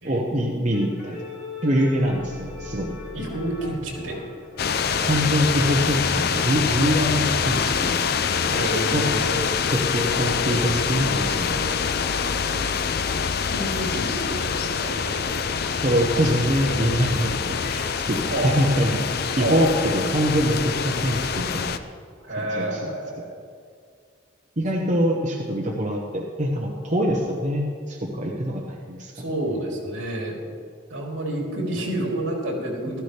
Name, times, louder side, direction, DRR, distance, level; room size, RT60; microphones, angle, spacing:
voice 1, 0.0-1.2 1.6-3.0 5.0-8.1 8.9-9.0 9.7-11.7 12.2-12.7 15.7-21.8 22.3-22.9 24.6-29.1, equal, 35° right, -2 dB, 1.0 m, -24 dB
sound 1, 0.7-6.4 8.8-14.8 17.4-18.7, left 4 dB, 70° left, 3.6 m, -39 dB
voice 2, 3.1-4.2 8.5-9.5 13.2-15.4 18.3-18.6 19.4-19.7 22.2-23.4 24.7-25.0 29.1-30.4 30.9-33.0, right 1 dB, 75° right, -2 dB, 3.2 m, -29 dB
sound 2, 3.2-6.0 10.2-14.6 17.9-20.2, left 2 dB, 30° left, 1.4 m, -47 dB
sound 3, 4.6-21.8, left 6 dB, 50° left, 0.5 m, -25 dB
16.0 x 13.5 x 3.4 m, 2.1 s
head